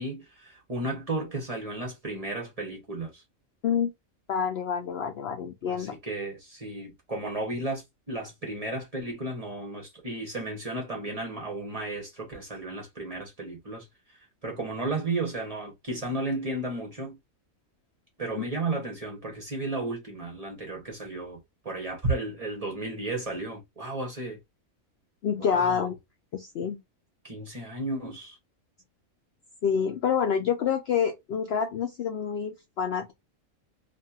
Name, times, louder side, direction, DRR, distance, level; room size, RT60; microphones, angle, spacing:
voice 1, 0.0-3.2 5.7-13.9 14.4-17.2 18.2-24.4 25.4-25.9 27.2-28.4, right 2 dB, 30° right, 0.9 m, -33 dB
voice 2, 4.3-5.9 25.2-25.9 26.3-26.8 29.6-33.1, left 7 dB, 65° left, 0.6 m, -27 dB
2.8 x 2.5 x 2.3 m
omnidirectional pair, 1.5 m